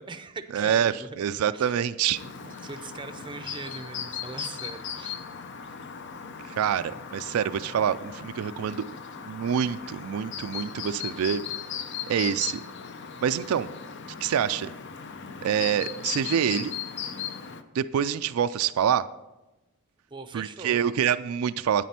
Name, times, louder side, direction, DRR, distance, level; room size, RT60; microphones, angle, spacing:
voice 1, 0.0-1.2 1.5-1.8 2.2-5.2 20.1-20.9, right 3 dB, 20° right, 10 dB, 0.6 m, -41 dB
voice 2, 0.5-2.2 6.5-8.8 9.2-11.4 12.1-12.6 13.2-13.7 14.2-14.7 15.4-16.8 17.7-19.0 20.3-21.8, right 8 dB, 80° right, 12 dB, 0.4 m, -26 dB
Chirp tweet, 2.1-17.6, left 7 dB, 55° left, 0.6 m, -38 dB
9.2 x 9.2 x 4.3 m, 1.0 s
head